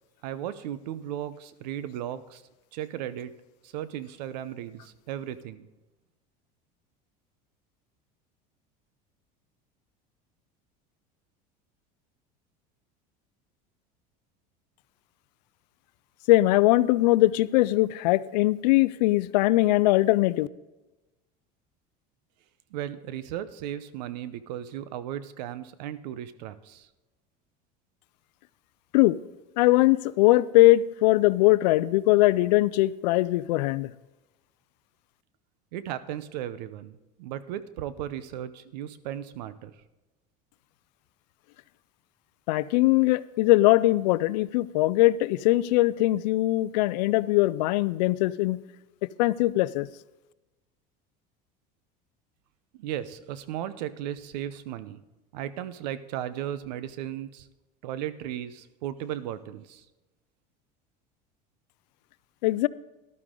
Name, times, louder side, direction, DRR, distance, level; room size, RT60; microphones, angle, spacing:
voice 1, 0.2-2.4 2.7-3.3 3.6-5.7 22.7-26.9 35.7-39.7 52.7-55.0 55.3-57.5 57.8-59.8, right 11 dB, 85° right, 14 dB, 0.8 m, -36 dB
voice 2, 16.3-20.5 28.9-29.2 29.6-33.9 42.5-48.6 49.2-49.9 62.4-62.7, left 18 dB, 85° left, 18 dB, 0.5 m, -21 dB
13.0 x 12.0 x 3.8 m, 1.1 s
supercardioid pair, 115°, 21 cm